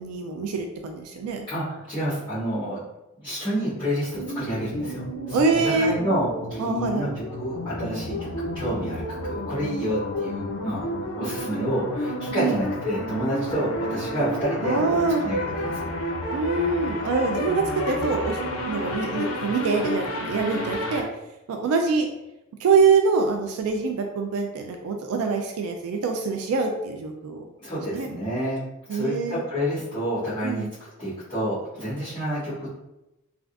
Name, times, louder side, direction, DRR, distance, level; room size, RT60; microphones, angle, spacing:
voice 1, 0.0-1.5 5.3-5.9 6.6-7.1 12.3-12.7 14.6-15.2 16.3-18.4 18.6-21.1 21.5-22.1 22.6-27.5 27.9-28.1 28.9-29.4 30.4-30.7, right 4 dB, 85° right, 4 dB, 0.3 m, -24 dB
voice 2, 1.5-2.8 3.2-7.1 7.4-10.9 11.2-15.9 27.6-30.7 31.0-32.8, equal, 20° left, -14 dB, 1.0 m, -29 dB
sound 1, 4.1-21.0, equal, 70° left, 0.5 m, -30 dB
3.4 x 2.4 x 2.4 m, 0.96 s
head